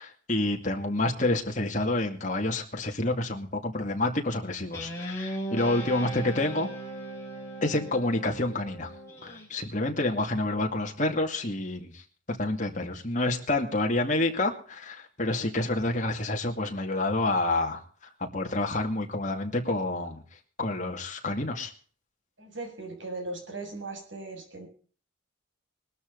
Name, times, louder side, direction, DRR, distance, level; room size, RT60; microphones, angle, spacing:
voice 1, 0.0-6.7 7.6-8.9 9.2-12.0 12.3-17.8 18.2-20.2 20.6-21.7, left 2 dB, 40° left, 3 dB, 2.4 m, -28 dB
Guitar, 4.7-9.5, right 1 dB, 15° left, 4.9 m, -38 dB
voice 2, 22.4-24.7, right 2 dB, 70° right, 2 dB, 7.0 m, -38 dB
21.0 x 12.5 x 4.0 m, 0.42 s
head